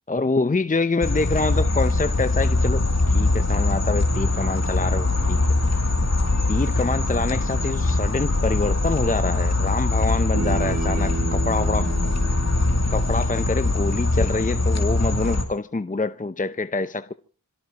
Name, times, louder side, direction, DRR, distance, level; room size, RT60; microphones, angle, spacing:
voice 1, 0.1-5.4 6.5-11.9 12.9-17.1, left 3 dB, 20° left, 0.7 m, -26 dB
sound 1, 1.0-15.4, left 2 dB, 45° left, 2.9 m, -22 dB
Bass guitar, 10.3-14.6, right 5 dB, 75° right, 3.0 m, -33 dB
26.5 x 17.0 x 3.0 m
cardioid pair, 45°, 35 cm